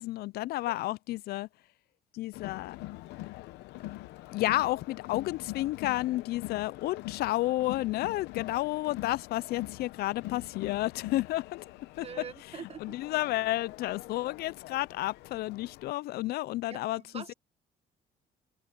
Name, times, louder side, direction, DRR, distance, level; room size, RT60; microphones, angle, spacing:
voice 1, 0.0-1.5 2.1-2.8 4.3-11.6 12.0-12.1 12.8-17.3, left 17 dB, 70° left, 0.4 m, -31 dB
Crowd, 2.3-15.9, left 18 dB, 90° left, 0.8 m, -43 dB
voice 2, 12.0-13.0 16.7-17.3, right 7 dB, 35° right, 1.6 m, -44 dB
open air
cardioid pair, 110°, 17 cm